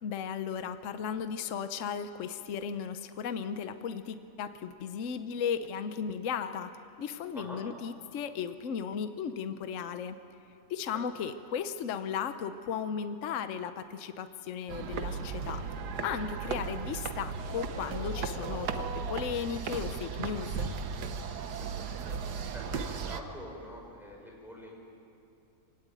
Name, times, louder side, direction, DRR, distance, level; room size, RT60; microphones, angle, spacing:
voice 1, 0.0-10.2 10.7-15.6 16.0-20.7, left 7 dB, 60° left, 10 dB, 1.0 m, -36 dB
sound 1, 14.7-23.2, right 5 dB, 85° right, 1.6 m, -36 dB
voice 2, 21.7-22.2 22.5-24.7, equal, ahead, -2 dB, 5.2 m, -46 dB
24.0 x 17.5 x 9.2 m, 2.7 s
omnidirectional pair, 1.7 m